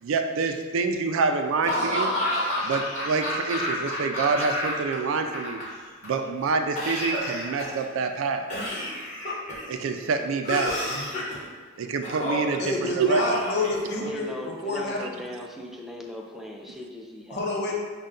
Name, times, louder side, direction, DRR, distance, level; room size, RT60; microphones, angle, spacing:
voice 1, 0.0-2.1 2.6-5.6 6.0-8.5 9.7-10.7 11.8-13.2, right 4 dB, 70° right, 6 dB, 0.4 m, -26 dB
Laughter / Cough, 1.6-4.9 5.2-6.1 6.8-7.9 8.5-9.7 10.4-11.4 12.0-12.6 13.0-14.2, left 1 dB, 35° left, 1.2 m, -29 dB
voice 2, 12.6-15.2 17.3-17.7, left 2 dB, 55° left, -1 dB, 0.7 m, -28 dB
voice 3, 14.0-17.4, equal, ahead, -1 dB, 0.4 m, -38 dB
5.3 x 2.2 x 3.7 m, 1.4 s
head